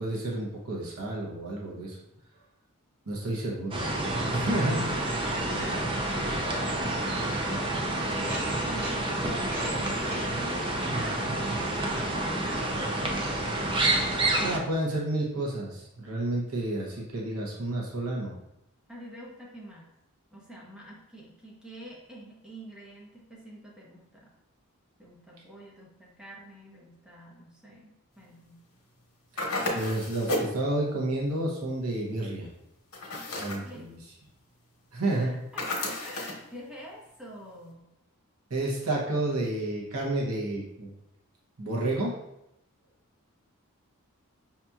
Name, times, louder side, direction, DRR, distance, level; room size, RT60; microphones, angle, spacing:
voice 1, 0.0-2.0 3.1-3.8 4.2-4.9 10.9-11.0 14.4-18.3 29.4-32.5 33.3-34.0 34.9-35.4 38.5-40.9 41.6-42.2, right 1 dB, 75° right, -2 dB, 0.8 m, -30 dB
sound 1, 3.7-14.6, right 2 dB, 20° right, 0.4 m, -29 dB
voice 2, 4.8-7.8 8.1-13.6 18.9-19.9 20.3-24.3 25.0-28.6 33.6-33.9 35.0-37.9, right 1 dB, 5° right, -4 dB, 0.8 m, -47 dB
sound 2, 8.3-9.0 9.3-10.2, right 1 dB, 45° right, 1.4 m, -40 dB
sound 3, 29.4-30.6 32.9-33.7 35.6-36.4, left 1 dB, 75° left, 1.0 m, -32 dB
5.6 x 2.8 x 2.3 m, 0.84 s
head